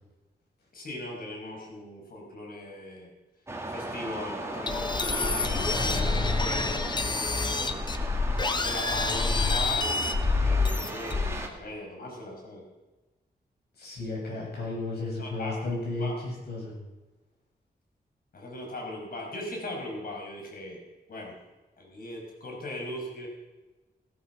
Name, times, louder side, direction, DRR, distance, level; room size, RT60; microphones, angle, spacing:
voice 1, 0.7-3.1 3.7-7.8 8.6-12.6 14.3-14.7 15.2-16.2 18.3-20.8 21.1-21.4 21.8-23.3, left 1 dB, 60° left, 0 dB, 5.3 m, -39 dB
sound 1, 3.5-11.5, right 2 dB, 15° right, 1.9 m, -37 dB
sound 2, 4.7-11.5, left 3 dB, 25° left, 0.9 m, -27 dB
voice 2, 13.8-16.8, left 2 dB, 75° left, -3 dB, 7.4 m, -33 dB
17.0 x 13.0 x 5.8 m, 1.1 s
wide cardioid pair, 180°, 17 cm